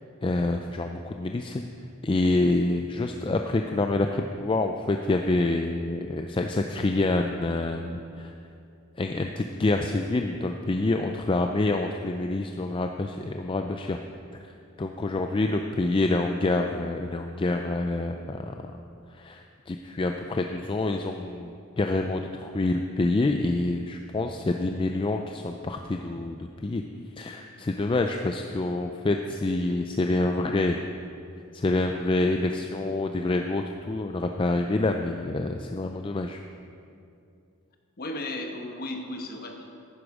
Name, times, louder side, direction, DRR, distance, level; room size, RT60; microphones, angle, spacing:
voice 1, 0.2-1.6 2.0-8.3 9.0-14.0 14.8-18.7 19.1-26.8 27.2-30.8 31.5-36.4, left 2 dB, 25° left, 4 dB, 0.4 m, -27 dB
voice 2, 38.0-39.7, left 1 dB, 45° left, 4 dB, 1.1 m, -35 dB
11.5 x 10.0 x 4.8 m, 2.5 s
head